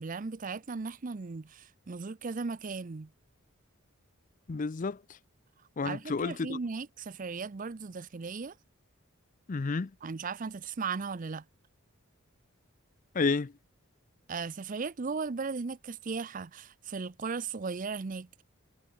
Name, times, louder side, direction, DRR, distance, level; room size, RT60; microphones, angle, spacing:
voice 1, 0.0-3.1 5.8-8.6 10.0-11.5 14.3-18.4, right 4 dB, 40° right, 0.5 m, -37 dB
voice 2, 4.5-5.2 5.8-6.6 9.5-9.9 13.1-13.5, left 4 dB, 40° left, 0.5 m, -31 dB
head